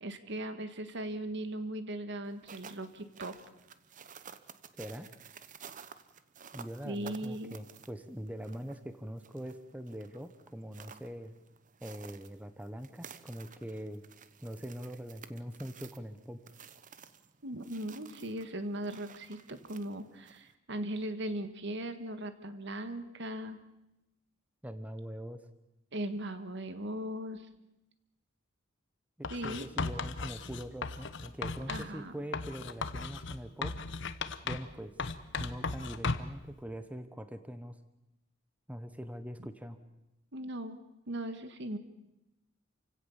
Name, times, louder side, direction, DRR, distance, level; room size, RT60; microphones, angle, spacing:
voice 1, 0.0-3.4 6.8-7.6 17.4-23.6 25.9-27.5 29.3-29.7 31.7-32.1 40.3-40.8 41.1-41.8, right 1 dB, 65° right, 10 dB, 1.7 m, -38 dB
sound 1, 2.3-20.5, right 6 dB, 40° right, 1.0 m, -53 dB
voice 2, 4.8-5.1 6.5-11.3 11.8-14.0 14.4-16.4 24.6-25.4 29.2-33.7 34.4-34.9 35.4-37.8 38.7-39.8, equal, 10° right, 10 dB, 1.0 m, -43 dB
Writing, 29.2-31.9 32.3-34.7 35.0-36.4, left 4 dB, 65° left, 1.1 m, -36 dB
28.0 x 16.5 x 7.2 m, 0.91 s
head